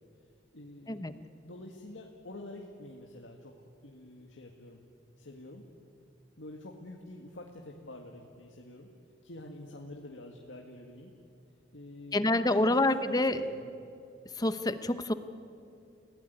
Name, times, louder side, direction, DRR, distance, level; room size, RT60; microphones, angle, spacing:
voice 1, 0.5-1.2 1.4-3.5 3.8-4.8 5.2-5.7 6.4-8.9 9.2-11.1 11.7-13.7, left 1 dB, 85° left, 1 dB, 1.9 m, -47 dB
voice 2, 12.1-13.4 14.4-15.1, left 2 dB, 20° left, 11 dB, 0.9 m, -27 dB
29.0 x 17.0 x 9.5 m, 2.5 s
head